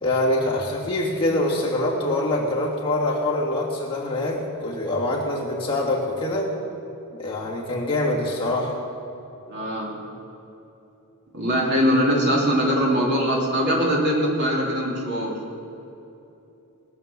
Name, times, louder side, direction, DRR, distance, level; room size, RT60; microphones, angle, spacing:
voice 1, 0.0-6.5 7.1-8.8, left 1 dB, 25° left, -5 dB, 2.7 m, -24 dB
voice 2, 9.5-9.9 11.3-15.4, equal, 50° right, -2 dB, 2.9 m, -22 dB
21.0 x 8.0 x 7.1 m, 2.9 s
head